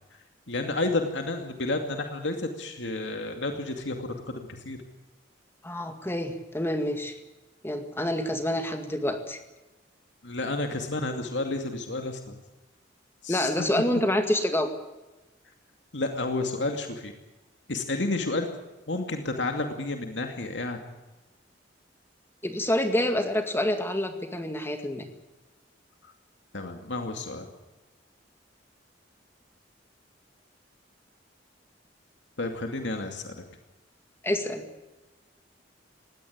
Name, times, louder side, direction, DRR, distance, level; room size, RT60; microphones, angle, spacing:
voice 1, 0.5-4.8 10.2-12.2 13.2-13.7 15.9-17.1 17.7-18.5 18.9-20.8 26.5-27.4 32.4-33.4, left 2 dB, 75° left, 4 dB, 2.5 m, -31 dB
voice 2, 5.6-7.1 7.6-9.4 13.3-14.7 22.4-25.1 34.2-34.6, left 1 dB, 15° left, 6 dB, 2.0 m, -27 dB
20.0 x 17.5 x 8.7 m, 1.1 s
head